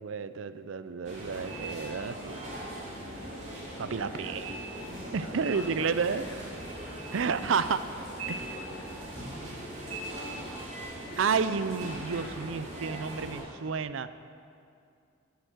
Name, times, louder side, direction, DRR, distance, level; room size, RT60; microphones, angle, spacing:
voice 1, 0.0-2.4 3.8-4.6 5.1-6.2 7.1-7.8 8.3-8.6 11.2-14.1, right 5 dB, 75° right, 13 dB, 0.5 m, -31 dB
sound 1, 1.0-13.4, right 1 dB, 35° right, 2.8 m, -40 dB
voice 2, 4.0-4.4 5.2-6.5 8.3-8.9 9.3-11.0, left 1 dB, 85° left, 1 dB, 1.8 m, -50 dB
13.5 x 8.0 x 6.6 m, 2.4 s
head